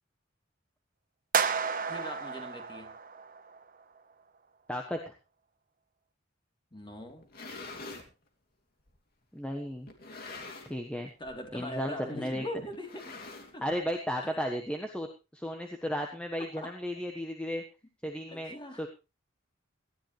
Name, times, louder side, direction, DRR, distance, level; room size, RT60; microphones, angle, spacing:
sound 1, 1.3-3.6, right 6 dB, 45° right, 1.1 m, -31 dB
voice 1, 1.8-3.0 6.7-7.3 11.2-13.2 13.5-13.7 14.2-14.3 16.4-16.7 18.3-18.8, left 1 dB, 25° left, 3 dB, 3.3 m, -41 dB
voice 2, 4.7-5.1 9.3-9.9 10.7-11.1 11.5-12.4 13.6-15.1 15.3-17.6 18.0-18.9, equal, 5° left, 3 dB, 1.3 m, -34 dB
sound 2, 7.1-8.1 8.9-9.0 9.9-10.9 11.2-11.5 11.7-11.8 12.7-13.8, left 3 dB, 50° left, 2.6 m, -45 dB
18.5 x 13.5 x 3.3 m, 0.29 s
head